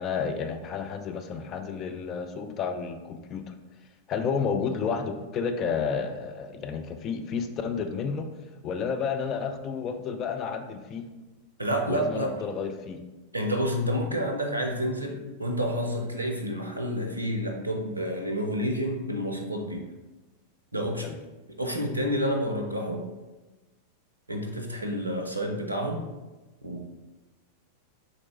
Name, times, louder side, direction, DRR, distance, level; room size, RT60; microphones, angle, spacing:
voice 1, 0.0-3.5 4.1-8.3 8.6-11.1 11.9-13.0 21.0-21.2, left 6 dB, 30° left, 6 dB, 0.4 m, -31 dB
voice 2, 11.6-12.4 13.3-19.9 20.7-21.1 21.6-23.1 24.3-26.1 26.6-26.9, equal, 85° right, 3 dB, 0.5 m, -29 dB
4.0 x 3.0 x 3.1 m, 1.1 s
figure-of-eight pair, 90°, 0 cm